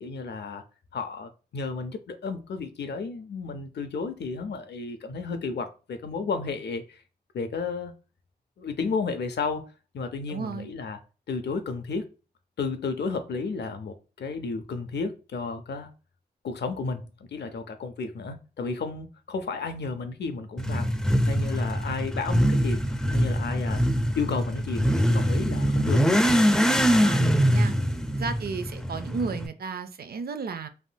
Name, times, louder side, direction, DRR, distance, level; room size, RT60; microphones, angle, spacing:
voice 1, 0.0-0.6 0.9-6.8 7.3-7.9 8.6-9.7 9.9-11.0 11.3-12.1 12.6-15.9 16.4-20.9 21.3-22.8 23.1-23.8 24.1-26.1, left 4 dB, 85° left, 0.5 m, -32 dB
voice 2, 10.3-10.7 26.8-27.8 28.1-30.7, right 5 dB, 65° right, 0.4 m, -33 dB
Motorcycle / Accelerating revving vroom, 20.6-29.5, equal, 5° left, 0.3 m, -23 dB
3.5 x 2.6 x 2.2 m
cardioid pair, 50°, 17 cm